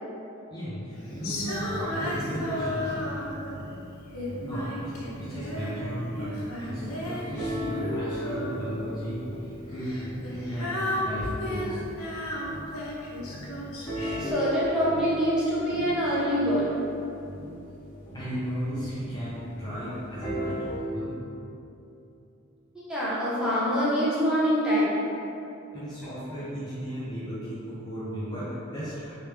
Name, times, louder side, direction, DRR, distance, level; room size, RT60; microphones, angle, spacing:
voice 1, 0.5-3.3 4.4-9.2 9.4-9.9 10.3-11.8 18.1-20.6 20.9-21.1 25.7-29.1, equal, 20° left, -10 dB, 0.5 m, -35 dB
sound 1, 1.1-4.0 4.3-12.9 13.2-20.8, equal, 35° left, 1.2 m, -38 dB
Female singing, 1.2-3.6 4.1-5.9 6.1-9.0 9.7-14.3, left 1 dB, 90° left, 0.7 m, -34 dB
voice 2, 14.1-16.7 22.7-25.0, equal, 5° right, -10 dB, 0.8 m, -25 dB
3.2 x 3.2 x 3.2 m, 2.7 s
head